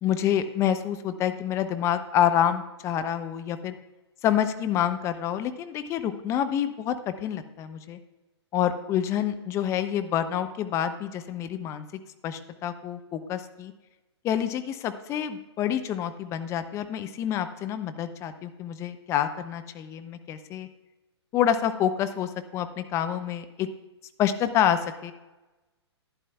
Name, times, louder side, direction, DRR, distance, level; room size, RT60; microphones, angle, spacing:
voice 1, 0.0-3.8 4.2-8.0 8.5-11.9 12.2-13.7 14.2-20.7 21.3-23.7 24.2-25.1, left 10 dB, 20° left, 10 dB, 0.5 m, -27 dB
11.5 x 11.0 x 2.3 m, 1.1 s
figure-of-eight pair, 120°, 14 cm